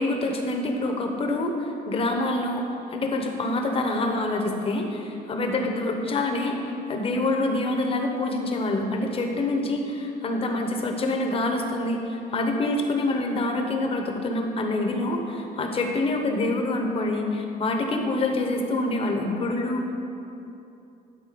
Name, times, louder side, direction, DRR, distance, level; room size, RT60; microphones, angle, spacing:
voice 1, 0.0-19.9, left 2 dB, 30° left, 3 dB, 1.0 m, -26 dB
11.5 x 4.5 x 6.8 m, 2.8 s
cardioid pair, 150°, 18 cm